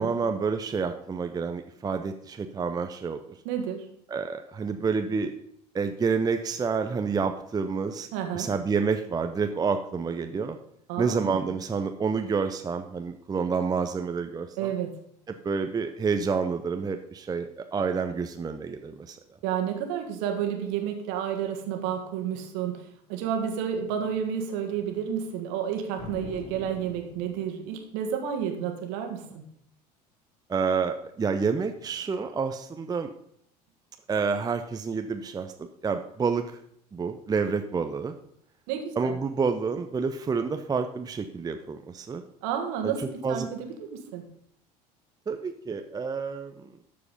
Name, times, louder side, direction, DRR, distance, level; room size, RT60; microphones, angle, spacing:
voice 1, 0.0-3.4 4.1-5.3 5.7-8.1 8.3-10.6 11.0-14.7 15.3-19.2 30.5-33.1 34.1-36.5 36.9-38.1 39.0-42.2 42.8-42.9 43.2-43.5 45.3-46.7, right 5 dB, 20° right, 7 dB, 0.6 m, -29 dB
voice 2, 3.4-3.8 8.1-8.5 10.9-11.4 14.6-14.9 19.4-29.4 38.7-39.2 42.4-44.2, right 8 dB, 60° right, 5 dB, 1.7 m, -31 dB
sound 1, 26.0-27.7, left 5 dB, 35° left, 2.9 m, -43 dB
12.0 x 4.8 x 5.4 m, 0.70 s
figure-of-eight pair, 65°, 21 cm